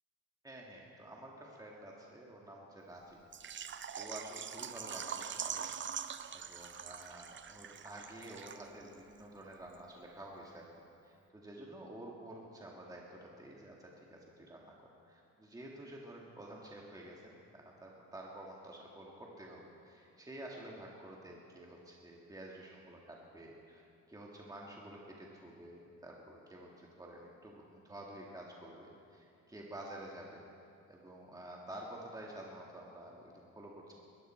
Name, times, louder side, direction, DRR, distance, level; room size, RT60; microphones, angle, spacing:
voice 1, 0.4-3.2 3.9-5.7 6.3-10.7 11.0-14.7 15.1-30.4 30.9-33.9, right 1 dB, 10° right, -2 dB, 2.0 m, -50 dB
Water / Liquid, 3.3-8.9 9.2-9.3 9.7-9.8, right 8 dB, 40° right, 0.6 m, -43 dB
20.5 x 14.0 x 4.5 m, 2.6 s
cardioid pair, 90°, 30 cm